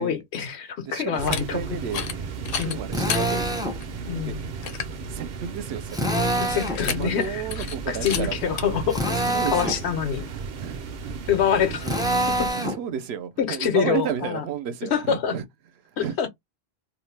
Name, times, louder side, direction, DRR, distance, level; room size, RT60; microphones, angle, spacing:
voice 1, 0.0-1.6 2.6-2.8 4.1-4.5 6.4-7.4 7.9-9.2 9.5-10.3 11.3-12.0 12.4-12.5 13.4-14.4 14.9-15.4 16.0-16.3, left 8 dB, 90° left, 1.0 m, -26 dB
voice 2, 0.8-2.1 2.5-3.6 4.3-4.4 5.1-6.3 6.8-8.6 9.3-9.8 10.2-10.8 11.8-12.2 12.5-15.4 16.0-16.2, right 8 dB, 85° right, 0.8 m, -32 dB
sound 1, 1.1-1.4 1.9-2.2 2.5-3.3 3.8-3.9 4.3-4.4 4.6-5.0 6.6-7.3 7.5-7.8 8.1-8.2 8.6-8.7, left 7 dB, 65° left, 0.7 m, -30 dB
sound 2, 1.2-12.5, right 5 dB, 55° right, 0.6 m, -35 dB
Drill, 2.9-3.8 5.9-6.8 8.9-9.8 11.8-12.8, right 1 dB, 5° right, 0.4 m, -25 dB
2.5 x 2.1 x 3.1 m
omnidirectional pair, 1.1 m